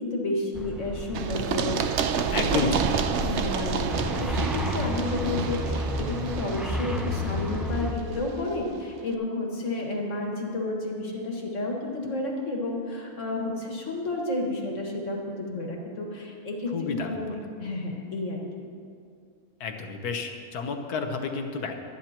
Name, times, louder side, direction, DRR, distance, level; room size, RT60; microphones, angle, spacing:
voice 1, 0.0-2.7 3.2-17.3 17.6-18.4, left 2 dB, 55° left, -1 dB, 2.1 m, -31 dB
sound 1, 0.5-7.9, equal, ahead, 0.3 m, -32 dB
Run, 1.1-8.8, right 7 dB, 60° right, 0.8 m, -30 dB
voice 2, 2.3-3.0 16.7-17.4 19.6-21.8, left 4 dB, 80° left, 4 dB, 1.6 m, -31 dB
24.0 x 10.0 x 3.0 m, 2.3 s
omnidirectional pair, 1.6 m